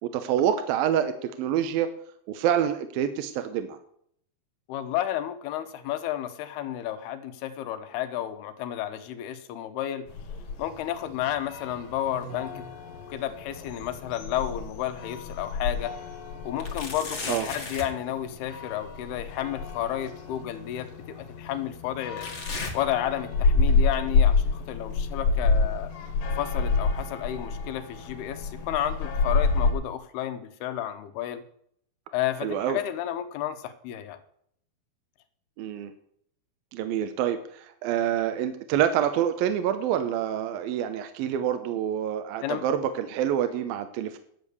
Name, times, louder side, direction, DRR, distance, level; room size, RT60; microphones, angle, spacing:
voice 1, 0.0-1.9 2.3-3.8 17.3-17.5 32.4-32.8 35.6-35.9 36.7-44.2, right 9 dB, 80° right, 8 dB, 2.5 m, -27 dB
voice 2, 4.7-10.1 10.6-12.6 13.1-15.9 16.4-22.3 22.7-25.9 26.4-31.4 32.1-34.2 42.4-42.6, left 11 dB, 85° left, 10 dB, 3.0 m, -32 dB
sound 1, 10.1-29.7, left 4 dB, 65° left, 3.4 m, -29 dB
sound 2, 12.1-12.7 13.1-15.0 15.5-15.6 16.6-18.0 19.7-19.8 20.7-20.8 22.2-23.6 23.9-24.3 24.9-25.0 25.9-26.0, left 3 dB, 50° left, 0.8 m, -39 dB
11.0 x 8.2 x 6.8 m, 0.67 s
omnidirectional pair, 4.4 m